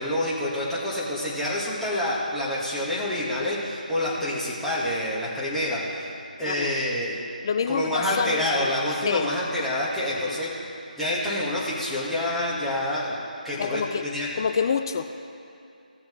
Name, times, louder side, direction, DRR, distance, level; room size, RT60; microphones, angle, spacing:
voice 1, 0.0-6.1 6.4-7.2 7.7-10.5 11.0-13.2 13.4-14.3, left 1 dB, ahead, -9 dB, 1.5 m, -27 dB
voice 2, 7.4-8.7 9.0-9.3 10.2-10.4 13.6-14.1 14.3-15.1, left 6 dB, 30° left, 8 dB, 0.3 m, -27 dB
17.5 x 7.0 x 3.2 m, 2.6 s
figure-of-eight pair, 155°, 5 cm